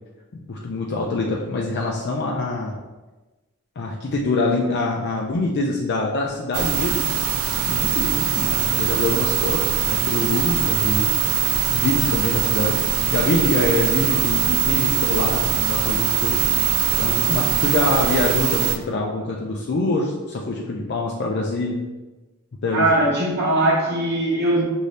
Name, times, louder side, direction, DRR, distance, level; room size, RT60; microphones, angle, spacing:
voice 1, 0.5-2.8 3.8-7.1 7.6-11.1 11.7-12.8 13.1-16.4 17.0-21.8 22.6-22.9, left 2 dB, 50° left, -1 dB, 0.4 m, -24 dB
sound 1, 6.5-18.8, right 9 dB, 70° right, 0.4 m, -22 dB
voice 2, 22.7-24.6, right 1 dB, 50° right, -3 dB, 1.0 m, -20 dB
5.2 x 2.7 x 3.2 m, 1.2 s
head